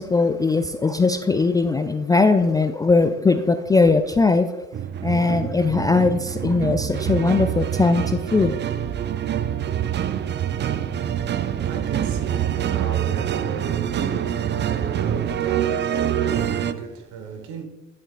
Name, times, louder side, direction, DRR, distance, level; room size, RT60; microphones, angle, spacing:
voice 1, 0.0-4.7 5.0-8.6, left 3 dB, 10° left, 0.3 m, -20 dB
sound 1, 4.7-16.7, right 10 dB, 30° right, 0.6 m, -25 dB
voice 2, 10.7-17.6, right 5 dB, 55° right, 1.5 m, -36 dB
11.0 x 7.4 x 2.5 m
figure-of-eight pair, 55°, 35 cm